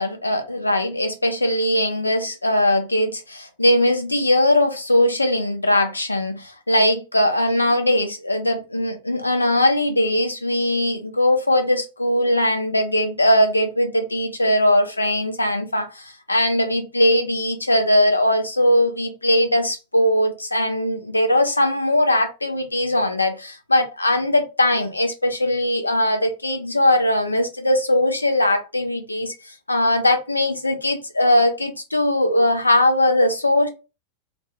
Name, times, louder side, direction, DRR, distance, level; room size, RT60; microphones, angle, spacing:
voice 1, 0.0-33.7, left 1 dB, 80° left, 0.5 m, -20 dB
2.9 x 2.2 x 3.0 m
figure-of-eight pair, 90°, 0 cm